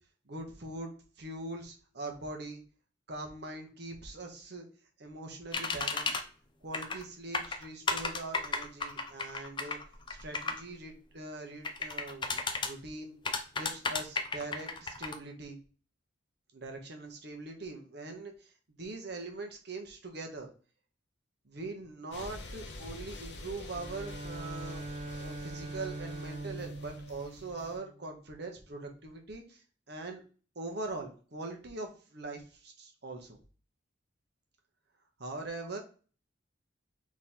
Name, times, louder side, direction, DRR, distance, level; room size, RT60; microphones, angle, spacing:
voice 1, 0.3-0.9 1.2-2.6 3.1-4.6 5.0-6.2 6.6-9.8 10.1-13.1 13.6-15.6 16.5-18.5 18.8-20.5 21.4-24.8 25.2-29.6 29.9-30.2 30.5-33.4 35.2-35.8, right 2 dB, 55° right, 3 dB, 1.0 m, -42 dB
sound 1, 5.5-6.2 6.7-7.0 7.3-10.6 11.6-12.7 13.3-15.2, left 4 dB, 25° left, 0.5 m, -33 dB
sound 2, 22.1-27.8, left 2 dB, 60° left, 1.0 m, -46 dB
Bowed string instrument, 23.7-28.4, right 2 dB, 35° right, 0.4 m, -43 dB
3.6 x 3.1 x 4.2 m, 0.39 s
head